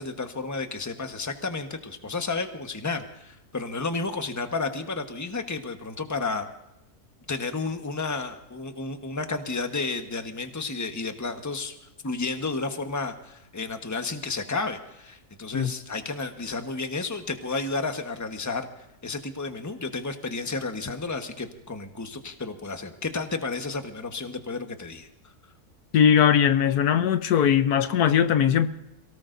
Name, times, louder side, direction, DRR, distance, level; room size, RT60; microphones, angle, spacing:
voice 1, 0.0-6.5 7.3-11.8 12.0-18.7 19.0-25.3, left 3 dB, 10° left, 1.1 m, -32 dB
voice 2, 25.9-28.7, left 8 dB, 80° left, 1.3 m, -20 dB
28.0 x 18.0 x 2.6 m
omnidirectional pair, 1.7 m